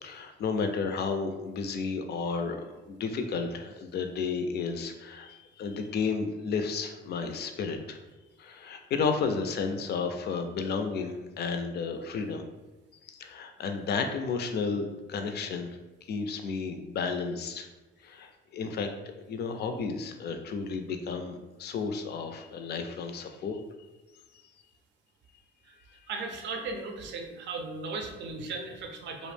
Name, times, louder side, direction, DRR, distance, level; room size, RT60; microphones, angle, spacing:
voice 1, 0.0-2.6 2.9-8.0 8.4-12.4 13.0-15.8 16.1-17.7 18.0-18.9 19.3-23.6, left 5 dB, 55° left, 6 dB, 0.4 m, -32 dB
voice 2, 26.1-29.3, right 3 dB, 65° right, 3 dB, 0.4 m, -36 dB
2.4 x 2.0 x 3.2 m, 1.1 s
cardioid pair, 90°, 20 cm